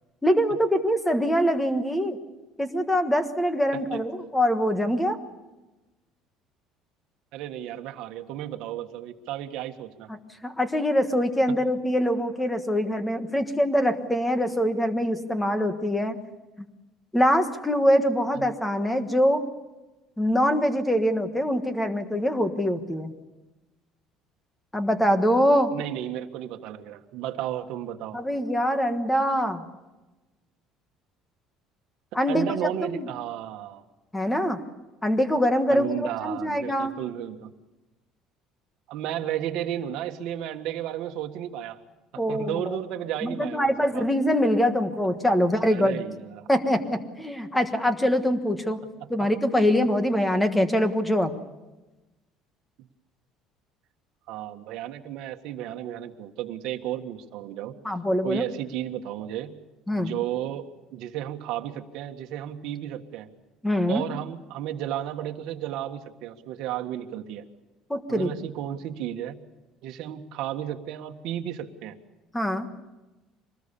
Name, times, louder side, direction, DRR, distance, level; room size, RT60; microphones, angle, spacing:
voice 1, 0.2-2.2 2.6-5.2 10.4-16.2 17.1-19.4 20.2-23.1 24.7-25.7 28.1-29.6 32.1-32.4 32.9-33.1 34.1-34.6 35.0-37.0 42.2-42.8 43.2-46.0 46.5-48.8 49.1-51.3 57.8-58.4 59.9-60.1 63.6-64.0 67.9-68.3 72.3-72.7, equal, 5° left, 9 dB, 1.4 m, -24 dB
voice 2, 7.3-10.1 11.5-11.6 18.3-18.5 25.7-28.2 32.3-33.8 35.7-37.5 38.9-41.8 42.3-44.1 45.7-46.5 52.8-52.9 54.3-57.7 58.2-59.5 59.9-63.3 63.9-67.5 68.1-69.4 69.8-72.0, right 11 dB, 60° right, 5 dB, 1.6 m, -33 dB
24.5 x 20.0 x 7.0 m, 1.1 s
cardioid pair, 170°, 0 cm